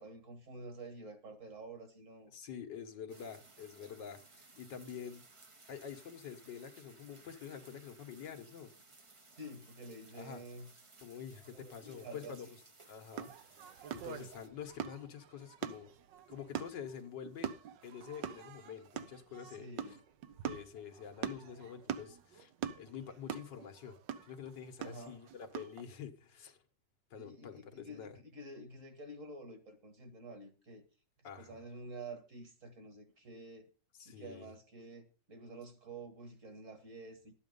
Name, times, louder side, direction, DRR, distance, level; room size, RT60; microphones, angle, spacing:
voice 1, 0.0-2.3 9.4-10.7 11.5-12.4 19.4-20.0 24.8-25.2 27.2-30.8 31.3-33.7 34.0-37.3, right 2 dB, 45° right, 1.9 m, -49 dB
voice 2, 2.3-5.2 5.7-8.7 10.1-10.4 11.0-12.6 12.9-13.3 13.6-15.9 16.3-17.5 17.8-20.0 20.5-22.5 22.8-24.0 24.2-26.6 27.1-28.2 31.2-31.6 34.0-34.5, left 7 dB, 80° left, 1.9 m, -47 dB
sound 1, 3.1-14.5, right 3 dB, 30° right, 0.6 m, -60 dB
sound 2, 13.1-25.8, right 9 dB, 80° right, 1.5 m, -44 dB
12.0 x 8.4 x 5.3 m
omnidirectional pair, 1.9 m